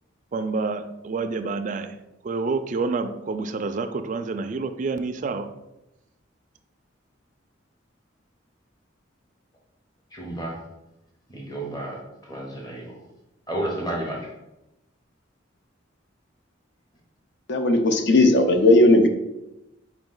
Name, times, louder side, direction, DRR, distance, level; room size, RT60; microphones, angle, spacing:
voice 1, 0.3-2.0 2.2-5.5, right 4 dB, 40° right, 8 dB, 0.3 m, -28 dB
voice 2, 10.1-10.6 11.3-12.9 13.5-14.3, right 1 dB, 20° left, -1 dB, 0.8 m, -31 dB
voice 3, 17.5-19.1, left 2 dB, 60° left, 6 dB, 0.5 m, -16 dB
4.6 x 3.0 x 3.8 m, 0.92 s
head